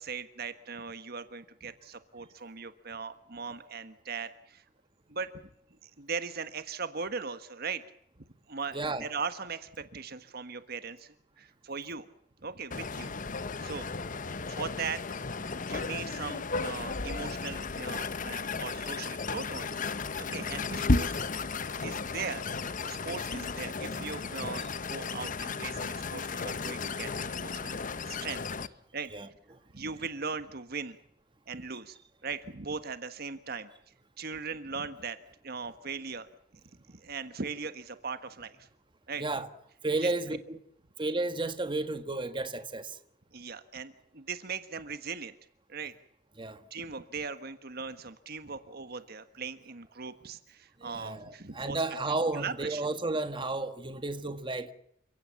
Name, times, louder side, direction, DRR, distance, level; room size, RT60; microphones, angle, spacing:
voice 1, 0.0-4.6 5.1-5.3 5.8-7.8 8.5-12.1 12.4-13.9 14.5-15.0 15.4-19.9 20.1-21.2 21.7-22.4 22.8-27.8 28.1-28.4 28.9-29.1 29.7-31.0 31.5-32.0 32.2-33.7 34.2-35.2 35.4-36.3 36.9-38.7 39.1-39.2 40.0-40.1 43.3-45.3 45.7-45.9 46.7-51.8 52.3-52.8, right 5 dB, 55° right, 1.5 m, -39 dB
voice 2, 8.7-9.1 29.1-29.6 39.2-39.5 39.8-40.6 41.0-43.0 46.4-46.6 50.8-54.7, right 2 dB, 25° right, 1.7 m, -32 dB
sound 1, 12.7-28.7, left 4 dB, 45° left, 0.9 m, -34 dB
29.5 x 17.0 x 7.2 m
head